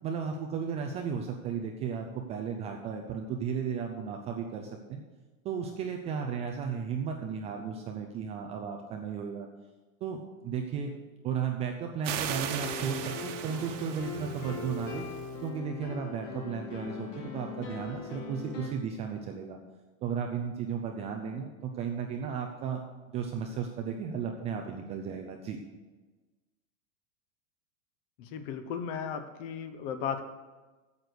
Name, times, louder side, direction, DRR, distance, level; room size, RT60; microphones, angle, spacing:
voice 1, 0.0-5.0 5.4-9.5 10.0-10.9 11.2-15.0 15.4-19.6 20.0-22.8 23.1-25.6, right 6 dB, 15° right, 3 dB, 0.4 m, -34 dB
sound 1, 12.0-15.3, right 9 dB, 65° right, 1.3 m, -38 dB
sound 2, 12.2-18.7, left 4 dB, 70° left, 2.9 m, -40 dB
voice 2, 28.2-30.2, left 7 dB, 45° left, 9 dB, 1.1 m, -35 dB
9.0 x 8.0 x 6.7 m, 1.2 s
supercardioid pair, 155°, 40 cm